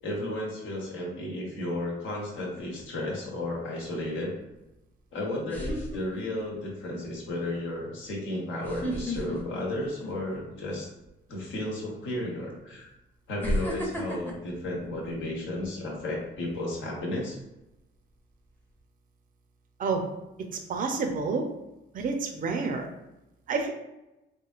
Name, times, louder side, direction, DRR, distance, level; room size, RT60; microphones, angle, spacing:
voice 1, 0.0-4.4 5.1-10.9 11.3-12.9 13.3-17.4, left 1 dB, 80° left, -3 dB, 1.0 m, -33 dB
sound 1, 2.3-2.8 4.7-4.8 5.5-6.6 7.0-7.3 8.6-10.5 10.8-11.1 12.1-12.2 13.4-15.7 16.1-16.4, equal, 10° left, 0.6 m, -34 dB
voice 2, 20.7-21.4 21.9-22.9 23.5-23.7, right 4 dB, 45° right, 4 dB, 0.5 m, -28 dB
3.0 x 2.7 x 2.4 m, 0.93 s
cardioid pair, 90°, 20 cm